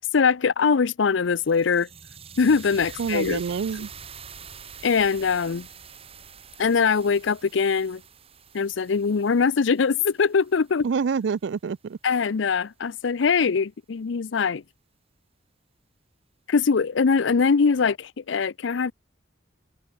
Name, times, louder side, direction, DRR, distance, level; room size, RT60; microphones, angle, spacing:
voice 1, 0.1-1.9 2.4-3.4 4.8-5.7 6.6-8.0 8.5-10.9 12.0-14.6 16.5-18.9, left 5 dB, 75° left, 0.5 m, -22 dB
sound 1, 1.1-11.2, right 6 dB, 30° right, 3.5 m, -45 dB
voice 2, 3.0-3.9 10.8-12.0, right 6 dB, 65° right, 0.4 m, -27 dB
head